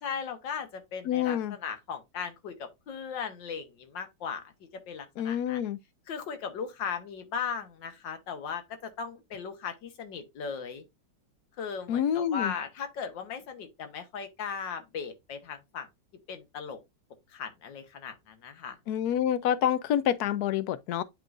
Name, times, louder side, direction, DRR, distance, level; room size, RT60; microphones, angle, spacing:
voice 1, 0.0-4.5 4.9-5.6 6.1-10.8 11.6-15.9 16.3-16.8 17.3-18.8, left 6 dB, 85° left, 1.8 m, -37 dB
voice 2, 1.1-1.6 5.2-5.8 11.9-12.5 18.9-21.0, left 10 dB, 70° left, 1.1 m, -27 dB
10.5 x 3.8 x 2.4 m
omnidirectional pair, 2.0 m